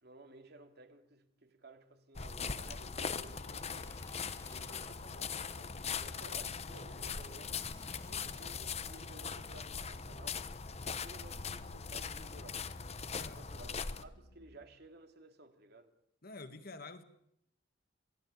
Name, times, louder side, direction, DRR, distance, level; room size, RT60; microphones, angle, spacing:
voice 1, 0.0-4.0 4.5-7.5 8.0-10.6 11.0-12.6 13.2-15.9, right 2 dB, 55° right, 2.6 m, -56 dB
sound 1, 2.1-14.0, left 5 dB, 35° left, 1.0 m, -41 dB
sound 2, 3.1-14.7, equal, 80° left, 3.0 m, -64 dB
sound 3, 3.2-5.0 7.1-9.0, left 1 dB, 15° left, 1.9 m, -58 dB
voice 2, 16.2-17.0, left 3 dB, 50° left, 1.9 m, -48 dB
28.0 x 18.0 x 8.5 m
head